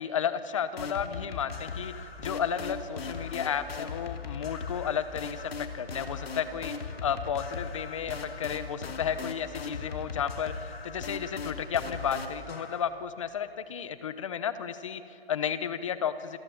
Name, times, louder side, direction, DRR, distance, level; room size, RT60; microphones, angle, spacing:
voice 1, 0.0-10.5 10.8-16.4, left 8 dB, 30° left, 13 dB, 0.9 m, -33 dB
sound 1, 0.8-12.8, left 5 dB, 70° left, 2.7 m, -39 dB
27.0 x 20.0 x 7.1 m, 3.0 s
hypercardioid pair, 160°, 31 cm